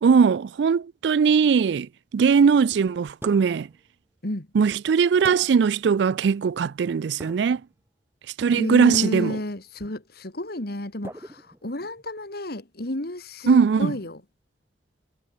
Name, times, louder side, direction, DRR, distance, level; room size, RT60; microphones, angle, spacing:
voice 1, 0.0-3.7 4.5-7.6 8.4-9.4 13.5-13.9, right 6 dB, 70° right, 0.4 m, -20 dB
sound 1, 3.2-3.8 5.2-5.8 7.2-7.7 8.9-9.5 11.0-12.0, right 1 dB, 15° right, 4.5 m, -43 dB
voice 2, 8.5-14.2, left 1 dB, 60° left, 2.6 m, -31 dB
head